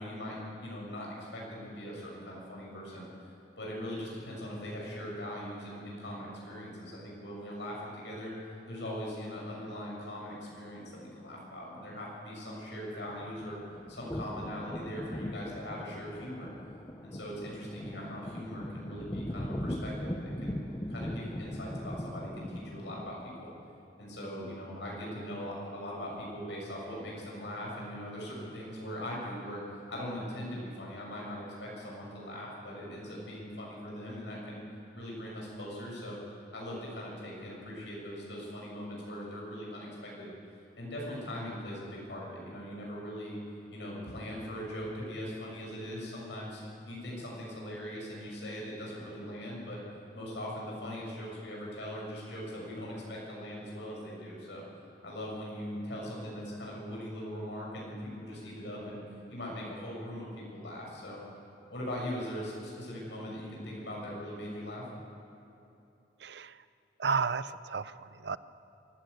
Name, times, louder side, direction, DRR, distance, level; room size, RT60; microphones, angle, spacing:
voice 1, 0.0-3.1 3.6-8.3 8.7-13.6 13.9-16.5 17.0-20.6 20.9-23.5 24.0-34.6 34.9-36.2 36.5-40.3 40.8-43.4 43.7-49.8 50.1-54.6 55.0-59.0 59.3-61.2 61.7-64.8, equal, 75° left, -3 dB, 6.5 m, -40 dB
sound 1, 13.1-23.5, left 1 dB, 20° left, 0.7 m, -40 dB
voice 2, 66.2-66.5 67.0-68.4, right 5 dB, 65° right, 15 dB, 0.6 m, -32 dB
24.5 x 15.5 x 8.2 m, 2.8 s
head